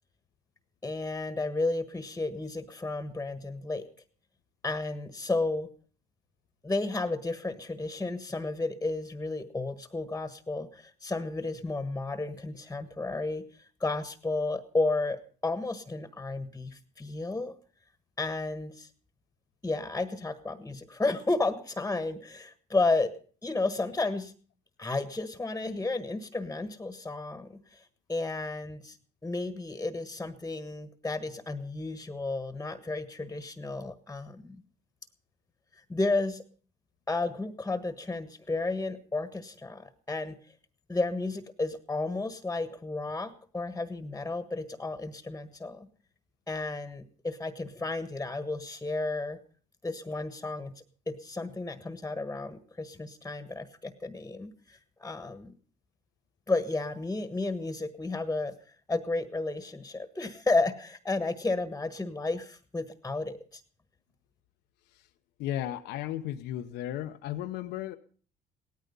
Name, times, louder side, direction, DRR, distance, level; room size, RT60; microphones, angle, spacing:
voice 1, 0.8-3.8 4.6-5.7 6.6-17.5 18.2-18.9 19.6-23.2 23.4-24.3 24.8-29.0 29.2-34.6 35.9-36.4 37.1-40.4 40.9-45.9 46.5-49.4 49.8-50.7 51.1-55.5 56.5-58.5 58.9-63.6, left 3 dB, 10° left, 11 dB, 1.4 m, -32 dB
voice 2, 65.4-68.0, left 12 dB, 85° left, 6 dB, 1.0 m, -34 dB
18.0 x 14.0 x 5.4 m, 0.43 s
cardioid pair, 110°, 17 cm